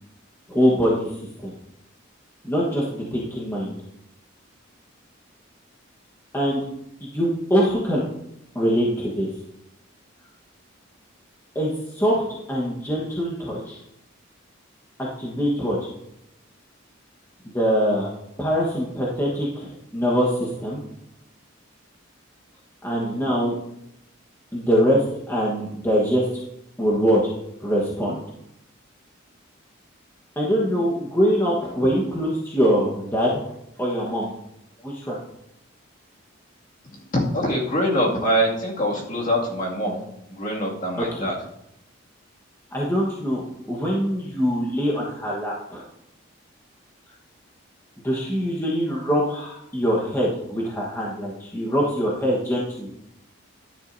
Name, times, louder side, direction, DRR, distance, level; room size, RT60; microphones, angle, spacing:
voice 1, 0.5-1.1 1.4-1.5 2.4-3.8 6.3-6.7 7.0-8.0 8.5-9.3 11.5-13.8 15.0-15.9 17.5-18.1 18.4-20.8 22.8-23.6 24.5-26.3 26.8-27.3 27.6-28.2 30.4-33.4 33.8-34.3 34.8-35.2 41.0-41.3 42.7-45.8 48.0-52.9, equal, 10° left, -4 dB, 1.2 m, -23 dB
voice 2, 37.3-40.0 40.3-41.3, equal, 40° left, -2 dB, 2.2 m, -24 dB
11.5 x 10.0 x 2.7 m, 0.81 s
head